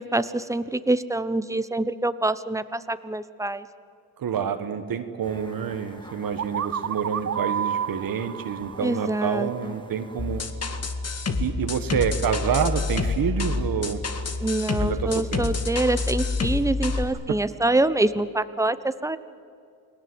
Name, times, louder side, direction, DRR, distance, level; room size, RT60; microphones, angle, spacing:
voice 1, 0.0-3.7 8.8-9.8 14.4-19.2, right 2 dB, 10° right, 13 dB, 1.0 m, -25 dB
voice 2, 4.2-10.4 11.4-14.0 14.8-15.4, right 7 dB, 60° right, 7 dB, 1.5 m, -28 dB
sound 1, 5.2-10.4, left 1 dB, 10° left, 2.5 m, -48 dB
sound 2, 6.4-10.1, right 8 dB, 40° right, 0.7 m, -31 dB
sound 3, 10.2-17.0, left 3 dB, 40° left, 2.0 m, -28 dB
29.0 x 20.5 x 8.0 m, 2.5 s
cardioid pair, 100°, 38 cm